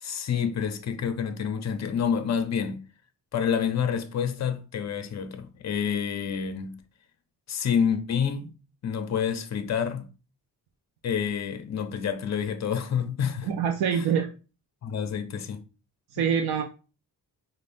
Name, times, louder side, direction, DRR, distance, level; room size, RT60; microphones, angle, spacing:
voice 1, 0.0-2.8 3.3-6.8 7.5-8.5 8.8-10.1 11.0-13.5 13.9-14.0 14.8-15.6 16.2-16.3, left 7 dB, 45° left, 0.5 m, -28 dB
voice 2, 13.4-14.3 16.1-16.6, right 7 dB, 80° right, 0.5 m, -25 dB
5.3 x 2.1 x 2.5 m
wide cardioid pair, 140°, 38 cm